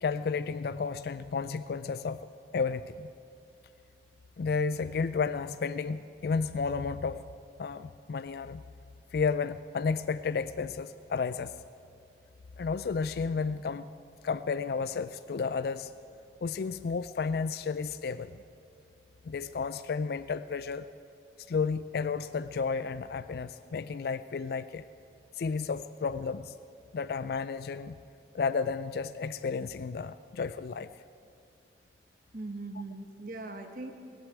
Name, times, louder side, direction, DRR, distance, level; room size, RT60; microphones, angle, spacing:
voice 1, 0.0-2.2 2.5-3.1 4.4-7.2 7.6-8.6 9.1-11.5 12.6-13.9 14.2-15.9 16.4-18.4 19.2-20.9 21.5-24.8 25.4-26.5 26.9-28.0 28.3-30.9, left 5 dB, 60° left, 14 dB, 0.3 m, -32 dB
voice 2, 32.3-33.9, right 2 dB, 50° right, 4 dB, 1.1 m, -40 dB
19.5 x 8.1 x 8.8 m, 2.4 s
head